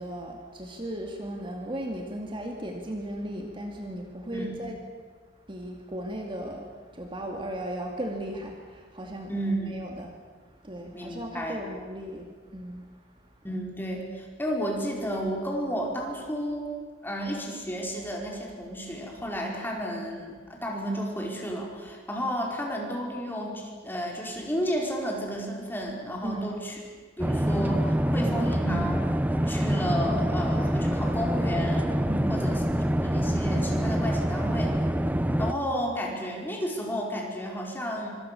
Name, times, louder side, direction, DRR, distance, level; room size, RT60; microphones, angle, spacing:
voice 1, 0.0-4.8 5.5-9.4 9.7-10.1 10.4-13.0 26.2-26.5 32.1-32.5, right 1 dB, 30° right, 2 dB, 2.3 m, -36 dB
voice 2, 9.3-9.7 10.9-11.6 13.4-16.7 17.0-26.7 27.2-29.2 29.4-32.0 32.3-32.6 33.0-34.7 35.4-38.1, equal, 10° left, -1 dB, 5.0 m, -32 dB
sound 1, 27.2-35.5, equal, 10° right, 0.7 m, -26 dB
25.5 x 24.5 x 7.0 m, 1.5 s
head